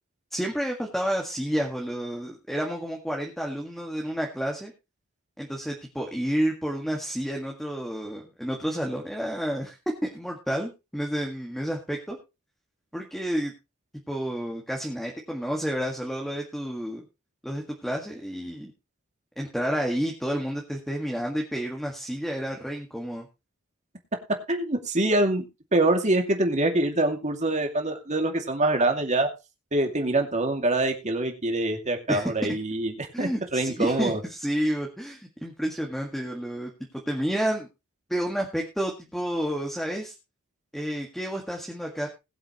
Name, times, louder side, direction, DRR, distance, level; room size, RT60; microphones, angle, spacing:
voice 1, 0.3-4.7 5.4-9.8 10.0-12.2 12.9-13.5 14.1-17.1 17.4-18.7 19.4-23.3 32.1-32.6 33.1-36.7 37.1-37.7 38.1-40.1 40.7-42.1, equal, ahead, 0 dB, 1.8 m, -30 dB
voice 2, 24.5-25.5 25.7-29.3 29.7-34.2, right 2 dB, 35° right, 4 dB, 2.5 m, -25 dB
20.5 x 7.9 x 3.1 m, 0.27 s
head